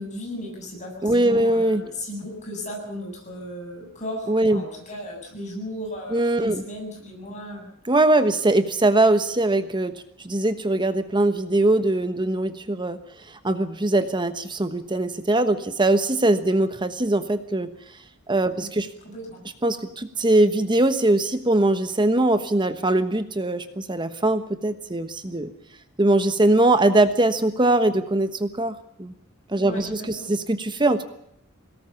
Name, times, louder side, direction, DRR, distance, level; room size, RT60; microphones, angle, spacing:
voice 1, 0.0-7.7 18.6-18.7 19.0-19.4 29.6-30.3, left 1 dB, 35° left, 0 dB, 7.9 m, -36 dB
voice 2, 1.0-1.9 4.3-4.6 6.1-6.6 7.9-13.0 13.3-17.7 18.3-18.9 19.6-25.5 26.0-29.1 29.5-31.0, right 2 dB, 20° right, 10 dB, 1.2 m, -21 dB
22.5 x 18.5 x 7.1 m, 0.74 s
head